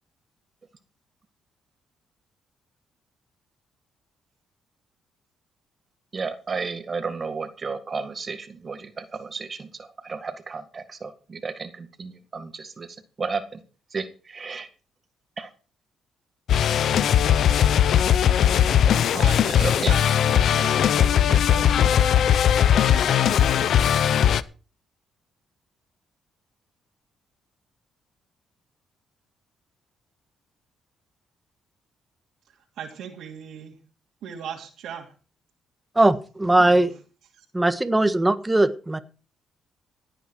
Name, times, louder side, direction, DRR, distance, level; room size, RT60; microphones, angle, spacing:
voice 1, 6.1-12.9 13.2-13.4 13.9-14.7 15.4-15.5 19.6-19.9, right 4 dB, 35° right, 8 dB, 1.9 m, -32 dB
sound 1, 16.5-24.4, left 9 dB, 70° left, 0.7 m, -19 dB
voice 2, 19.1-22.2 32.8-33.8 34.2-35.1 36.6-36.9 37.3-37.4, right 7 dB, 80° right, -1 dB, 2.9 m, -38 dB
voice 3, 35.9-36.9 37.5-39.0, right 2 dB, 15° right, 10 dB, 1.6 m, -20 dB
17.5 x 9.0 x 4.8 m, 0.35 s
cardioid pair, 90°, 0 cm